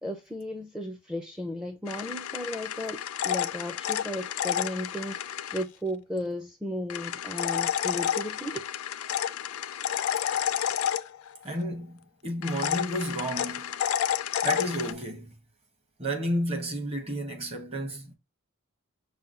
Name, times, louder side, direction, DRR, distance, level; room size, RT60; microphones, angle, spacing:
voice 1, 0.0-5.2 5.5-8.6, left 1 dB, 5° right, 0.4 m, -35 dB
sound 1, 1.9-5.6 6.9-11.5 12.4-14.9, left 10 dB, 70° left, 0.4 m, -30 dB
voice 2, 11.4-13.7 14.4-15.3 16.0-18.1, equal, 30° right, 1.0 m, -31 dB
5.6 x 2.2 x 3.7 m
head